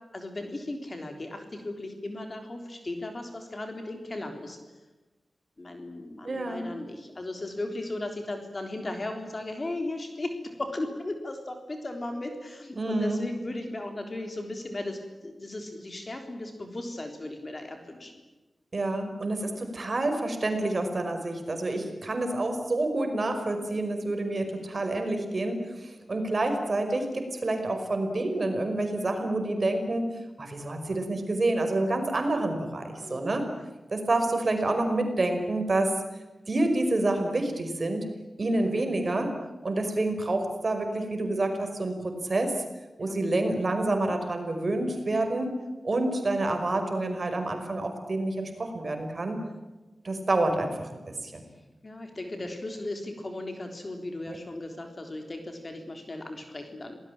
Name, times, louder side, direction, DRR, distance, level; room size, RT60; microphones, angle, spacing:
voice 1, 0.1-4.6 5.6-18.1 33.0-33.2 43.0-43.1 51.8-57.0, left 2 dB, 35° left, 4 dB, 3.6 m, -36 dB
voice 2, 6.2-6.7 12.8-13.2 18.7-33.5 33.9-35.9 36.5-38.1 38.4-39.3 39.6-42.6 43.0-49.4 50.0-51.5 54.3-54.4, right 2 dB, 45° right, 5 dB, 5.4 m, -28 dB
27.5 x 19.0 x 8.9 m, 1.1 s
wide cardioid pair, 80°, 0 cm